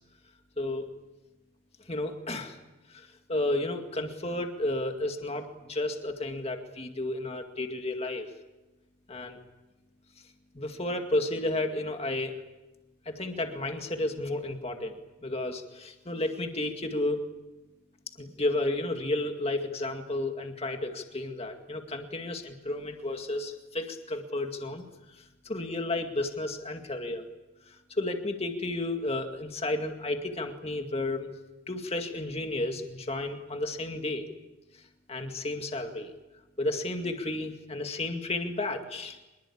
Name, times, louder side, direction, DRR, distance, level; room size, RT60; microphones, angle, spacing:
voice 1, 0.6-0.9 1.9-2.6 2.9-8.3 9.1-9.4 10.5-12.4 13.1-15.0 15.2-17.2 18.2-27.2 27.7-31.3 31.7-34.3 34.7-34.8 35.1-36.1 36.6-39.2, left 2 dB, 30° left, 4 dB, 2.1 m, -32 dB
25.0 x 22.0 x 8.6 m, 1.1 s
head